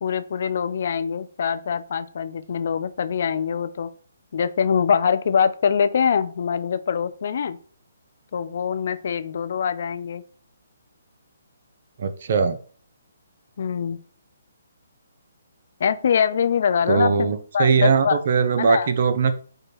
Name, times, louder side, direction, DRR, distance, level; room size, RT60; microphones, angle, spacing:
voice 1, 0.0-3.9 4.3-7.6 8.3-10.2 13.6-14.0 15.8-17.3 17.5-18.2 18.6-18.9, left 7 dB, 55° left, 12 dB, 0.3 m, -23 dB
voice 2, 12.0-12.6 16.9-19.3, right 5 dB, 55° right, 9 dB, 0.4 m, -20 dB
4.8 x 2.2 x 3.0 m, 0.43 s
figure-of-eight pair, 140°, 0 cm